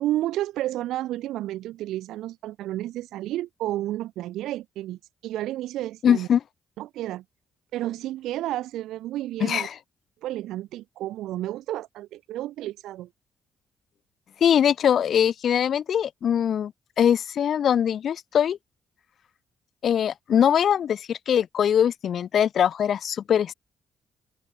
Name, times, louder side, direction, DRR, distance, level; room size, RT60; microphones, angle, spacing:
voice 1, 0.0-6.3 6.8-7.2 7.7-9.7 10.2-13.1, right 14 dB, 85° right, 0.5 m, -31 dB
voice 2, 6.0-6.4 9.4-9.7 14.4-16.7 17.0-18.6 19.8-23.5, left 9 dB, 60° left, 0.4 m, -22 dB
open air
cardioid pair, 90°, 0 cm